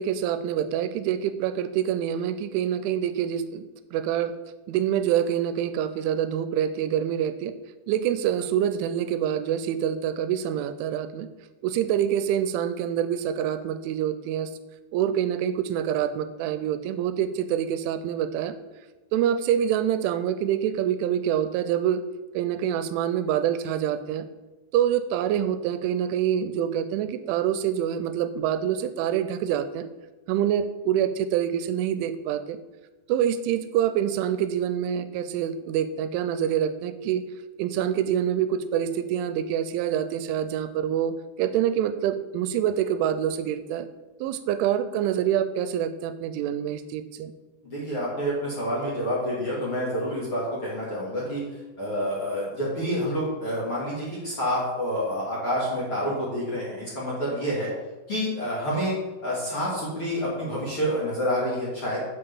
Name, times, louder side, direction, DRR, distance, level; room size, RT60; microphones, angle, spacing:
voice 1, 0.0-3.7 3.9-4.3 4.7-7.5 7.9-11.3 11.6-14.5 14.9-18.5 19.1-22.0 22.3-24.2 24.7-29.9 30.3-32.6 33.1-37.2 37.6-43.9 44.2-47.3, right 10 dB, 85° right, 12 dB, 3.0 m, -26 dB
voice 2, 47.7-51.4 51.8-57.7 58.1-58.9 59.2-62.0, equal, 40° left, -6 dB, 2.3 m, -28 dB
8.2 x 5.8 x 7.0 m, 1.1 s
omnidirectional pair, 5.5 m